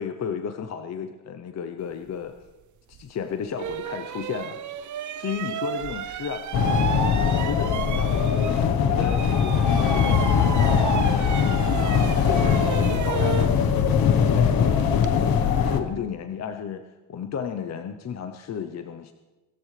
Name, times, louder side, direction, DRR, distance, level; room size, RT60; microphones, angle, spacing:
voice 1, 0.0-2.3 2.9-4.6 5.2-6.4 7.3-8.6 8.8-10.6 11.0-14.0 14.2-16.8 17.1-19.1, left 7 dB, 50° left, 7 dB, 0.7 m, -33 dB
sound 1, 2.9-3.0 3.6-8.7 9.0-15.1, right 10 dB, 55° right, 0.7 m, -33 dB
sound 2, 6.5-15.8, left 6 dB, 80° left, 1.2 m, -21 dB
23.5 x 14.0 x 3.3 m, 1.1 s
wide cardioid pair, 145°, 34 cm